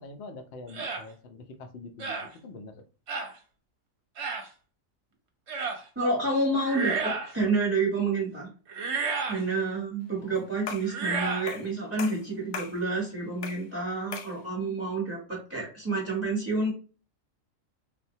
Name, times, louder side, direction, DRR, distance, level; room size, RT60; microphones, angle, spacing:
voice 1, 0.0-2.8 10.2-10.5, left 3 dB, 65° left, 7 dB, 0.6 m, -45 dB
sound 1, 0.7-1.0 2.0-2.3 3.1-3.3 4.2-4.5 5.5-5.8 6.6-7.3 8.7-9.4 10.8-11.5, right 4 dB, 60° right, 0.9 m, -31 dB
voice 2, 6.0-8.5 9.3-16.7, right 3 dB, 10° right, -4 dB, 0.9 m, -29 dB
sound 2, 10.7-11.0 11.5-11.7 12.0-12.8 13.4-13.7 14.1-14.4, left 6 dB, 90° left, 1.1 m, -38 dB
3.7 x 2.2 x 2.7 m, 0.36 s
omnidirectional pair, 1.4 m